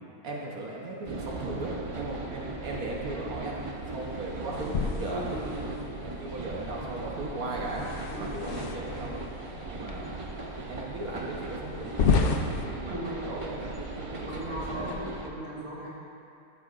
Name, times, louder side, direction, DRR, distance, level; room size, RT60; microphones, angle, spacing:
voice 1, 0.2-5.7 6.0-7.9 8.2-9.2 9.7-10.2 10.7-12.3 12.7-13.0 13.3-14.9, right 2 dB, 75° right, -3 dB, 1.4 m, -37 dB
sound 1, 1.0-15.3, right 2 dB, 55° right, 0.3 m, -38 dB
sound 2, 4.5-5.9 7.6-9.1 9.9-10.0 10.6-10.7 11.8-12.7, left 5 dB, 70° left, 0.5 m, -29 dB
voice 2, 5.1-5.8 8.1-8.4 12.9-13.2 14.2-15.9, equal, 10° right, -9 dB, 1.9 m, -38 dB
13.5 x 6.7 x 2.5 m, 2.7 s
omnidirectional pair, 1.5 m